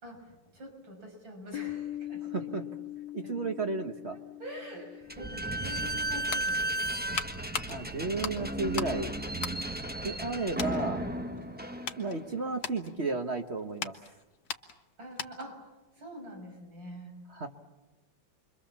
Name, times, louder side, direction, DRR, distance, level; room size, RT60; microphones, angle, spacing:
voice 1, 0.0-2.7 3.2-3.5 4.0-6.8 10.2-10.4 15.0-15.6 16.0-17.2, equal, 75° right, 1 dB, 6.9 m, -46 dB
Piano, 1.5-6.9, left 14 dB, 75° left, 1.9 m, -42 dB
voice 2, 2.3-2.6 3.1-4.2 7.7-9.1 10.0-11.0 12.0-13.9 17.3-17.5, right 3 dB, 40° right, 5 dB, 1.3 m, -33 dB
Slam / Squeak, 5.1-12.4, right 1 dB, 10° right, 0.6 m, -34 dB
sound 1, 6.3-9.0 9.3-10.3 10.6-10.8 11.4-15.6 15.9-16.1, left 6 dB, 55° left, 1.7 m, -40 dB
29.0 x 23.5 x 7.3 m, 1.1 s
omnidirectional pair, 2.1 m